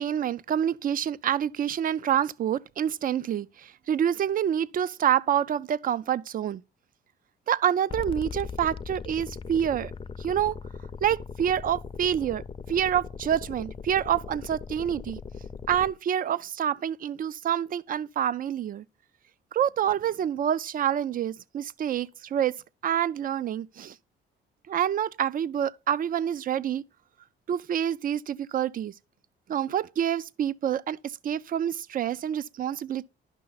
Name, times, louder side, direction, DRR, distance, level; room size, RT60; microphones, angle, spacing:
voice 1, 0.0-6.6 7.5-9.9 10.2-10.6 11.0-12.4 12.7-15.2 15.7-18.8 19.5-22.6 22.8-23.9 24.7-26.8 27.5-28.9 29.5-33.1, right 9 dB, 45° right, 0.4 m, -27 dB
sound 1, 7.9-15.9, left 5 dB, 25° left, 0.5 m, -39 dB
10.5 x 5.8 x 3.9 m
cardioid pair, 90°, 20 cm